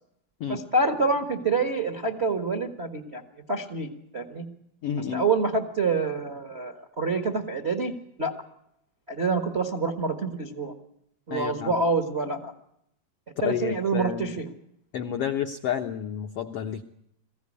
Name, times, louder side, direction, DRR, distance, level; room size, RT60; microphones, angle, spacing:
voice 1, 0.5-3.2 3.5-4.5 5.1-7.9 8.2-8.3 9.1-10.7 11.3-12.5 13.4-14.5, right 3 dB, 65° right, 6 dB, 0.6 m, -27 dB
voice 2, 4.8-5.2 11.3-11.8 13.4-14.4 14.9-16.8, left 9 dB, 80° left, 5 dB, 1.3 m, -30 dB
21.5 x 15.5 x 9.8 m, 0.78 s
omnidirectional pair, 4.0 m